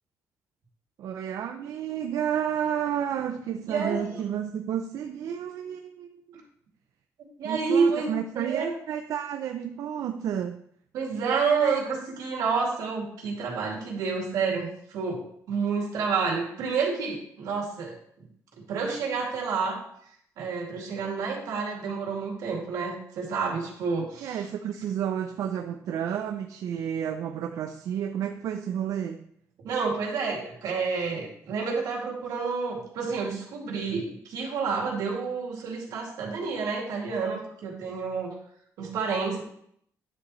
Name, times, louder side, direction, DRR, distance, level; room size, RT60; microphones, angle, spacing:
voice 1, 1.0-6.4 7.4-10.6 24.2-29.3, right 9 dB, 65° right, 6 dB, 0.5 m, -31 dB
voice 2, 3.7-4.1 7.4-8.7 10.9-17.9 18.6-19.8 20.4-24.4 29.6-38.4 38.8-39.4, right 5 dB, 80° right, -1 dB, 2.4 m, -29 dB
10.0 x 7.1 x 3.1 m, 0.69 s
cardioid pair, 165°, 6 cm